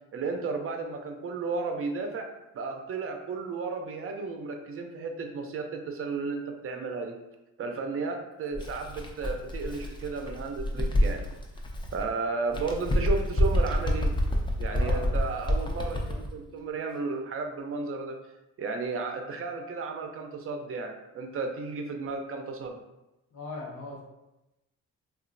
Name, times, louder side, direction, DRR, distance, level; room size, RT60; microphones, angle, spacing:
voice 1, 0.1-2.3 2.5-7.2 7.6-11.3 11.9-14.1 14.6-18.2 18.6-22.8, right 4 dB, 45° right, 4 dB, 0.5 m, -33 dB
Bird, 8.5-12.1 12.5-16.3, left 1 dB, 15° left, 0.4 m, -28 dB
voice 2, 14.7-15.1 23.3-24.0, left 2 dB, 70° left, -2 dB, 0.9 m, -39 dB
2.9 x 2.4 x 2.5 m, 0.97 s
cardioid pair, 90°, 30 cm